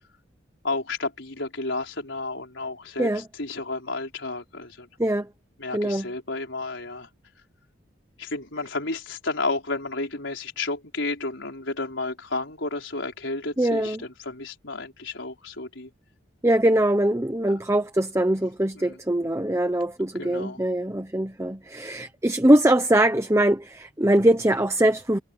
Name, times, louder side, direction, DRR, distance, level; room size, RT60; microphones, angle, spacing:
voice 1, 0.6-4.9 5.6-7.1 8.2-15.9 17.4-17.6 18.7-19.0 20.2-20.6, left 3 dB, 70° left, 4.6 m, -32 dB
voice 2, 5.7-6.1 13.6-14.0 16.4-25.2, right 1 dB, 15° right, 1.0 m, -22 dB
head